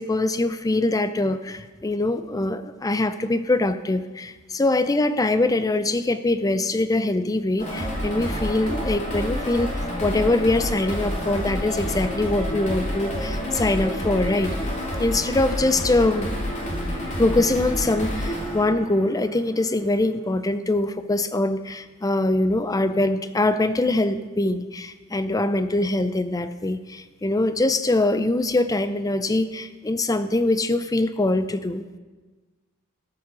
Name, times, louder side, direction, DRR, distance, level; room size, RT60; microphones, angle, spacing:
voice 1, 0.0-14.5 15.0-16.3 17.2-32.0, left 2 dB, 15° left, 11 dB, 0.5 m, -23 dB
sound 1, 7.6-19.6, equal, 35° left, 2.6 m, -29 dB
13.5 x 7.3 x 6.2 m, 1.3 s
head